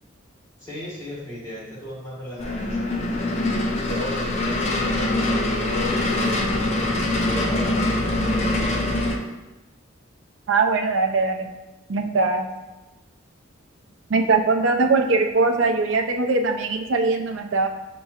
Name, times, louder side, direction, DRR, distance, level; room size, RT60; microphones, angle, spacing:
voice 1, 0.6-3.2 3.9-6.4 7.2-8.7, equal, 15° left, -8 dB, 1.4 m, -36 dB
sound 1, 2.4-9.2, left 2 dB, 30° left, 0.4 m, -23 dB
voice 2, 10.5-11.5 11.9-12.5 14.1-17.7, right 3 dB, 75° right, 5 dB, 0.4 m, -21 dB
6.2 x 3.0 x 2.4 m, 1.1 s
head